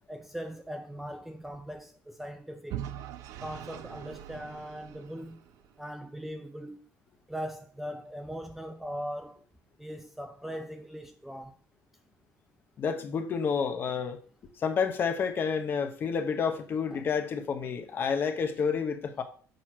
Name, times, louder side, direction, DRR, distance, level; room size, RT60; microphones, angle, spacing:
voice 1, 0.1-2.8 3.4-5.4 5.8-6.8 7.3-9.4 9.8-11.6 16.9-17.0, equal, 5° right, 0.5 m, -40 dB
Vehicle / Engine, 2.7-5.7, right 11 dB, 70° right, 0.7 m, -41 dB
voice 2, 12.8-14.2 14.6-19.2, left 6 dB, 35° left, 0.9 m, -29 dB
6.5 x 4.4 x 6.1 m
cardioid pair, 155°, 6 cm